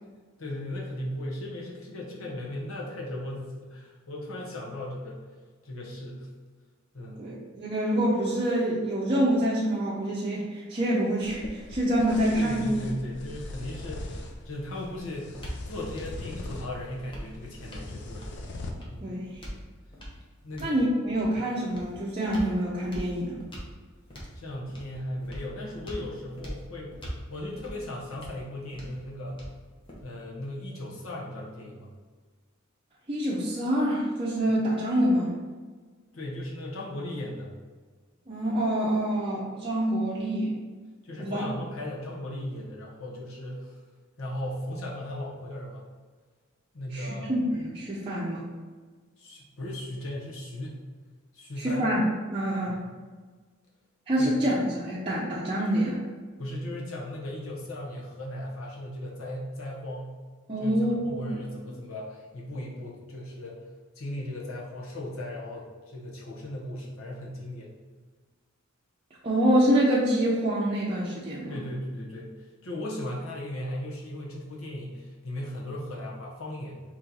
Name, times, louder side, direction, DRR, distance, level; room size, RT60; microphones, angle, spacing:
voice 1, 0.4-5.2 5.6-6.3 6.9-7.3 12.2-14.1 14.4-15.4 15.7-18.2 18.9-19.1 20.4-20.7 24.3-27.0 27.3-29.4 30.0-31.9 34.5-34.6 36.1-37.5 41.0-43.8 44.2-45.9 46.7-47.3 49.2-50.9 51.3-51.8 52.7-52.9 54.2-54.3 56.4-60.2 60.6-60.8 61.0-63.6 64.0-67.7 71.5-72.3 72.6-76.8, left 1 dB, 70° left, -4 dB, 1.1 m, -37 dB
voice 2, 7.2-12.7 19.0-19.3 20.6-23.4 33.1-35.3 38.3-40.5 41.2-41.4 46.9-48.4 51.6-52.0 52.3-52.7 54.1-56.0 60.5-61.4 69.2-71.6, right 1 dB, 25° right, -8 dB, 0.7 m, -26 dB
sound 1, 11.2-18.7, left 2 dB, 55° left, 0.6 m, -41 dB
sound 2, 14.3-30.3, equal, 25° left, 1.0 m, -44 dB
4.2 x 3.1 x 3.9 m, 1.5 s
head